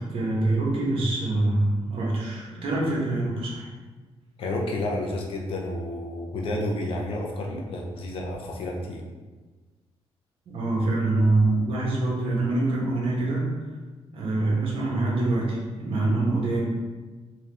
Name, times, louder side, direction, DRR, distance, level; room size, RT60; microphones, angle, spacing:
voice 1, 0.0-3.7 7.5-7.6 10.5-13.5 14.1-16.6, right 2 dB, 60° right, -4 dB, 1.1 m, -25 dB
voice 2, 4.4-9.0, left 1 dB, 60° left, 0 dB, 0.6 m, -30 dB
3.6 x 2.9 x 3.4 m, 1.3 s
cardioid pair, 155°, 10 cm